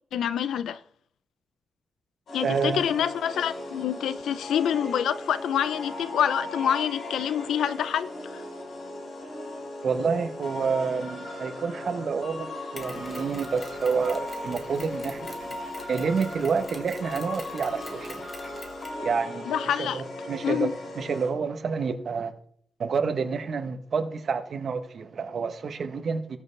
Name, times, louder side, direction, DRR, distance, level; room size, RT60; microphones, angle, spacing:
voice 1, 0.1-0.8 2.3-8.4 19.5-20.0 20.4-20.7, left 9 dB, 85° left, 0.6 m, -27 dB
sound 1, 2.3-21.3, left 1 dB, 55° left, 4.2 m, -37 dB
voice 2, 2.4-2.9 9.8-15.3 15.9-18.3 19.0-19.5 19.8-20.7 21.0-22.3 22.8-26.2, right 5 dB, 45° right, 1.0 m, -28 dB
Mechanisms, 12.8-19.0, left 2 dB, 20° left, 1.6 m, -46 dB
19.0 x 6.6 x 3.3 m
wide cardioid pair, 170°, 0 cm